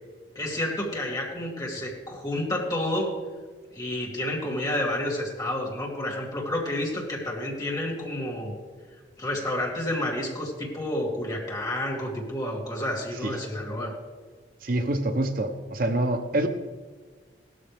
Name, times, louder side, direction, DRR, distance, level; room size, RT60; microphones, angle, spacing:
voice 1, 0.3-3.1 3.7-8.5 9.2-13.9, left 1 dB, 20° left, -2 dB, 2.6 m, -30 dB
voice 2, 14.6-16.5, right 1 dB, 50° right, 7 dB, 0.7 m, -26 dB
17.0 x 13.0 x 3.5 m, 1.4 s
head